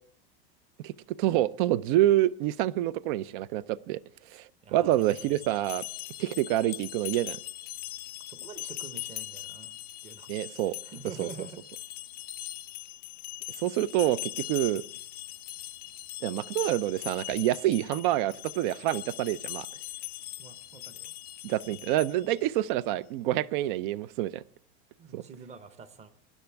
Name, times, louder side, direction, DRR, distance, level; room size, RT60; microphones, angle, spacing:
voice 1, 0.8-4.0 4.3-5.8 6.2-7.4 10.3-10.8 11.2-11.3 13.6-14.8 16.2-19.7 21.4-24.4 25.1-25.2, right 14 dB, 60° right, 0.6 m, -27 dB
voice 2, 4.6-5.3 8.2-10.3 10.6-11.9 20.4-21.1 25.0-26.1, right 5 dB, 20° right, 0.9 m, -47 dB
sound 1, 4.9-22.4, left 16 dB, 35° left, 0.5 m, -41 dB
19.0 x 10.5 x 3.4 m
supercardioid pair, 145°, 30 cm